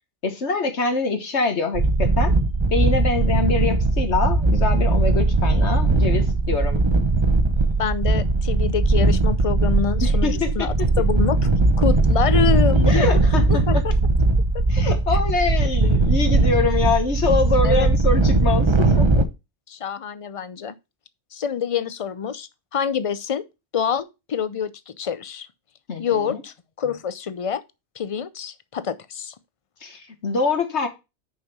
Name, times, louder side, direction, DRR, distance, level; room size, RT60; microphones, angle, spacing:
voice 1, 0.2-2.3 2.7-6.8 10.0-10.7 12.8-13.8 14.7-19.3 25.9-26.4 29.8-30.9, left 3 dB, 70° left, 1.6 m, -24 dB
sound 1, 1.7-19.2, right 2 dB, 30° right, 0.7 m, -19 dB
voice 2, 7.8-11.5 11.8-13.2 13.5-13.9 14.5-14.6 17.6-17.9 19.7-20.7 21.3-23.4 23.7-25.5 26.0-27.6 28.0-29.3, left 7 dB, 45° left, 0.5 m, -26 dB
6.4 x 5.4 x 5.9 m
omnidirectional pair, 1.2 m